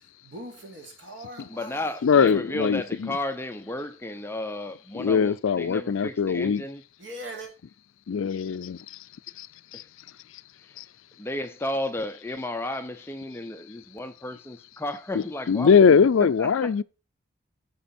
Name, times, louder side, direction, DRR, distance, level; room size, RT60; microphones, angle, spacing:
voice 1, 0.2-1.9 2.6-2.9 7.0-7.5, right 1 dB, 60° right, 3.2 m, -41 dB
voice 2, 1.5-6.8 9.7-9.9 10.6-10.8 11.2-15.9 16.2-16.8, left 1 dB, 10° left, 0.6 m, -33 dB
voice 3, 2.0-3.1 5.0-6.6 8.1-8.8 9.4-9.5 9.7-9.8 15.5-16.8, left 6 dB, 70° left, 0.4 m, -21 dB
14.0 x 5.0 x 4.3 m
head